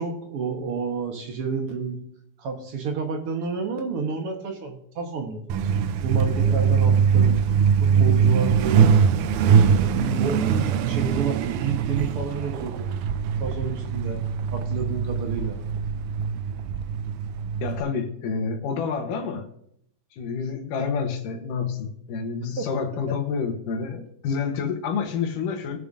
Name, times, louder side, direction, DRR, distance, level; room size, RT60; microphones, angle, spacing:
voice 1, 0.0-2.0 2.4-5.5 6.0-7.4 7.8-8.9 9.4-12.9 13.4-14.2 14.5-15.6 22.6-22.7, right 5 dB, 55° right, 3 dB, 1.8 m, -30 dB
Truck, 5.5-17.8, right 7 dB, 80° right, 2.1 m, -22 dB
voice 2, 17.6-19.5 20.1-25.8, left 5 dB, 90° left, 4 dB, 2.8 m, -28 dB
20.0 x 6.8 x 2.6 m, 0.70 s
omnidirectional pair, 3.7 m